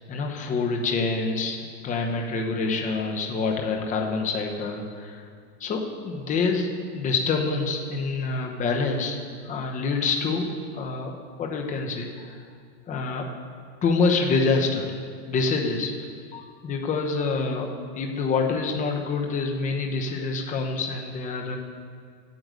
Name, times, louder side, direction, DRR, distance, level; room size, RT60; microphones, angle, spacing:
voice 1, 0.1-1.6 1.8-5.2 5.6-9.2 9.4-10.5 10.7-11.1 11.4-12.4 12.9-13.3 13.8-14.9 15.3-15.9 16.3-21.6, left 4 dB, 15° left, 2 dB, 0.9 m, -26 dB
9.2 x 7.8 x 8.0 m, 2.1 s
supercardioid pair, 155°, 49 cm